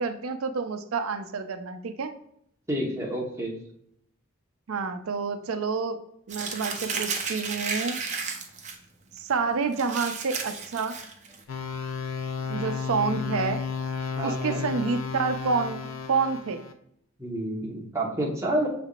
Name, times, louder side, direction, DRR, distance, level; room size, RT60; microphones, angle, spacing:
voice 1, 0.0-2.1 4.7-8.0 9.2-10.9 12.5-13.7 14.2-16.6, right 5 dB, 80° right, 9 dB, 0.5 m, -28 dB
voice 2, 2.7-3.6 14.1-14.6 17.2-18.7, right 1 dB, 15° right, -2 dB, 1.0 m, -29 dB
Crumpling crinkling, 6.3-8.7 9.2-9.3 9.7-11.4, right 5 dB, 35° right, 0.6 m, -33 dB
sound 1, 11.5-16.7, left 6 dB, 70° left, 0.5 m, -33 dB
6.4 x 3.4 x 2.4 m, 0.72 s
head